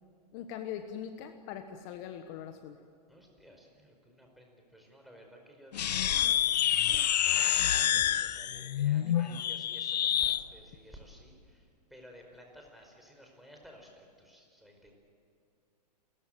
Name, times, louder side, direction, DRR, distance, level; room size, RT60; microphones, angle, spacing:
voice 1, 0.3-2.8, left 9 dB, 40° left, 8 dB, 1.3 m, -41 dB
voice 2, 3.1-14.9, equal, ahead, 1 dB, 4.8 m, -54 dB
sound 1, 5.7-10.4, left 11 dB, 80° left, 0.6 m, -28 dB
29.5 x 14.5 x 9.2 m, 2.3 s
hypercardioid pair, 125°, 21 cm